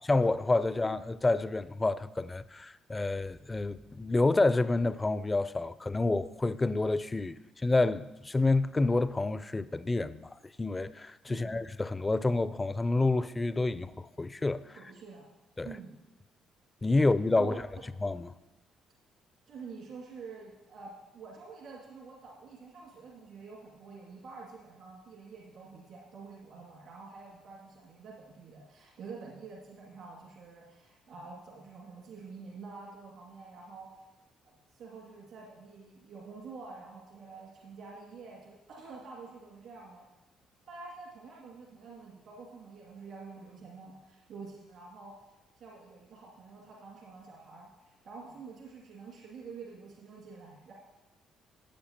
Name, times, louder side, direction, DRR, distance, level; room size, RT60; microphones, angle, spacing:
voice 1, 0.1-14.8 15.6-15.7 16.8-17.6 18.0-18.3, left 2 dB, 25° left, 0.4 m, -28 dB
voice 2, 11.3-11.6 14.8-15.3 15.6-16.0 17.3-17.8 19.5-33.9 34.4-40.0 40.7-45.1 45.6-50.7, right 4 dB, 70° right, 2.2 m, -48 dB
15.5 x 8.3 x 2.9 m
hypercardioid pair, 50°, 0 cm